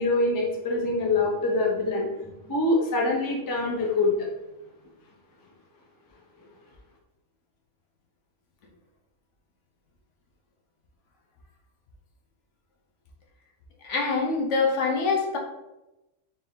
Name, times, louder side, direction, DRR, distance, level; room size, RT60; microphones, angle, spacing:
voice 1, 0.0-2.1 2.4-4.3, left 2 dB, 25° left, -1 dB, 0.5 m, -24 dB
voice 2, 13.8-15.4, left 4 dB, 70° left, 0 dB, 1.1 m, -24 dB
4.1 x 2.7 x 3.6 m, 0.96 s
omnidirectional pair, 1.3 m